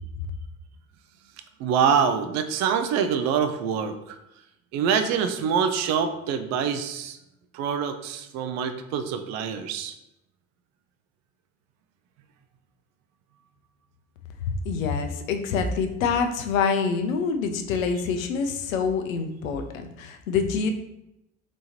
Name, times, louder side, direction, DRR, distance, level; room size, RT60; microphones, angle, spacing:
voice 1, 1.6-4.2 4.7-7.2 7.5-9.9, right 7 dB, 45° right, 8 dB, 0.4 m, -25 dB
voice 2, 14.6-20.7, left 5 dB, 75° left, 7 dB, 0.5 m, -26 dB
3.4 x 3.0 x 2.7 m, 0.86 s
figure-of-eight pair, 60°, 40 cm